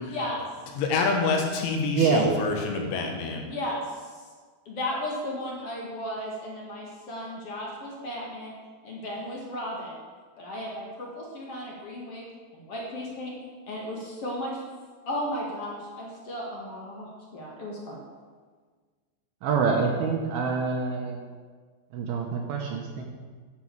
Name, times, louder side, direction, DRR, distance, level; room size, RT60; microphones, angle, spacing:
voice 1, 0.0-0.4 3.4-4.0 4.7-8.5 8.8-9.9 10.4-12.2 12.5-13.3 13.7-14.6 15.1-17.1 17.3-18.0, left 1 dB, 50° left, -3 dB, 2.0 m, -34 dB
voice 2, 0.8-3.5, left 3 dB, 90° left, 2 dB, 4.0 m, -27 dB
voice 3, 1.9-2.4 19.4-21.3 21.9-23.0, right 5 dB, 70° right, 1 dB, 2.7 m, -26 dB
10.5 x 6.3 x 8.0 m, 1.5 s
omnidirectional pair, 5.2 m